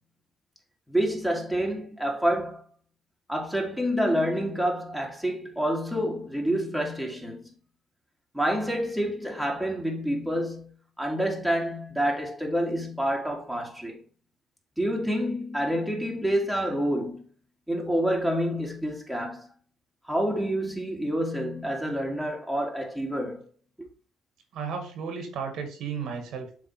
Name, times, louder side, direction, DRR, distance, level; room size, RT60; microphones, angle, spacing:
voice 1, 0.9-2.6 3.3-7.4 8.3-14.0 14.8-17.2 17.7-19.5 20.0-23.5 23.8-23.9, equal, ahead, 2.0 m, -28 dB
voice 2, 24.5-26.7, right 6 dB, 80° right, 1.8 m, -34 dB
7.5 x 3.5 x 4.6 m
cardioid pair, 90°, 0 cm